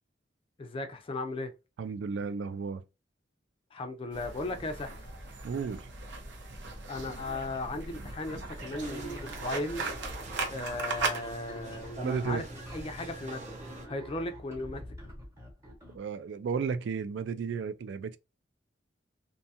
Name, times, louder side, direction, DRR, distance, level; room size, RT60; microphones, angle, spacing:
voice 1, 0.6-1.5 3.7-5.0 6.9-9.9 10.5-12.4 12.7-13.6 13.9-14.8, left 2 dB, 30° left, 0.4 m, -36 dB
voice 2, 1.8-2.8 5.4-5.9 12.0-12.4 15.9-18.2, right 5 dB, 75° right, 0.3 m, -33 dB
sound 1, 4.1-11.2, right 3 dB, 90° right, 0.7 m, -38 dB
sound 2, 8.7-16.1, equal, 15° right, 0.9 m, -48 dB
sound 3, 8.8-13.9, right 2 dB, 40° right, 0.7 m, -44 dB
2.7 x 2.2 x 2.7 m
head